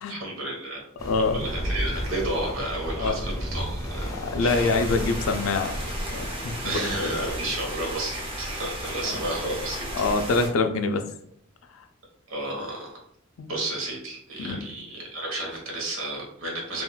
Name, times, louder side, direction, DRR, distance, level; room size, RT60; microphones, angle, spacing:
voice 1, 0.1-0.8 1.3-4.1 4.4-4.8 6.6-9.8 12.3-12.9 13.5-16.8, right 1 dB, 80° right, -1 dB, 1.1 m, -32 dB
voice 2, 1.0-1.5 3.0-3.2 4.2-5.7 6.1-6.9 7.2-7.3 9.0-9.2 9.9-11.0 13.4-13.5 14.4-14.6, left 3 dB, 80° left, 7 dB, 0.4 m, -25 dB
sound 1, 1.0-7.4, equal, 15° left, 0.5 m, -33 dB
sound 2, 4.5-10.5, equal, 25° right, 0.5 m, -34 dB
3.6 x 2.4 x 2.2 m, 0.68 s
head